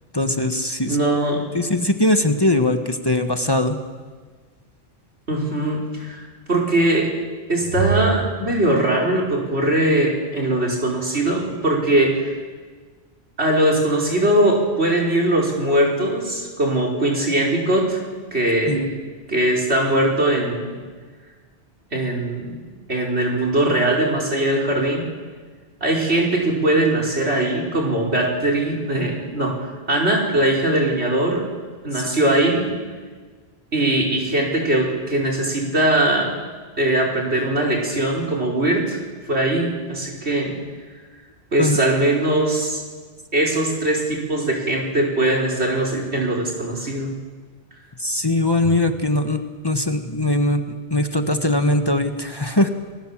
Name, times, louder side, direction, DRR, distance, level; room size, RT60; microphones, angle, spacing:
voice 1, 0.1-1.0 1.5-3.8 18.7-18.9 31.9-32.0 41.6-41.8 48.0-50.6 50.9-52.7, left 1 dB, 25° left, 6 dB, 1.4 m, -21 dB
voice 2, 0.8-1.4 5.3-7.1 7.5-12.4 13.4-18.0 18.3-18.9 19.3-20.8 21.9-22.6 22.9-25.1 25.8-31.4 31.8-32.7 33.7-36.3 36.8-39.0 39.3-40.6 41.5-42.8 43.3-47.1, right 1 dB, 85° right, 0 dB, 5.2 m, -20 dB
29.5 x 19.5 x 7.4 m, 1.5 s
omnidirectional pair, 1.1 m